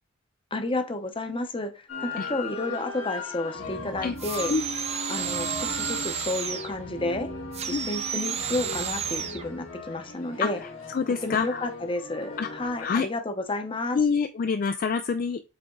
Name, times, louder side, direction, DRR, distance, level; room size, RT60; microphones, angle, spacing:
voice 1, 0.5-4.5 5.1-7.3 7.6-10.6 11.2-14.0, left 2 dB, 25° left, 8 dB, 0.8 m, -31 dB
sound 1, 1.9-12.9, left 3 dB, 90° left, 2.2 m, -38 dB
sound 2, 3.5-9.9, right 1 dB, 60° right, 1.5 m, -46 dB
sound 3, 4.2-6.8 7.5-9.5, right 8 dB, 30° right, 0.6 m, -32 dB
voice 2, 10.4-11.7 12.4-13.1 13.9-15.4, left 5 dB, 45° left, 9 dB, 0.4 m, -27 dB
7.8 x 3.5 x 3.7 m, 0.31 s
head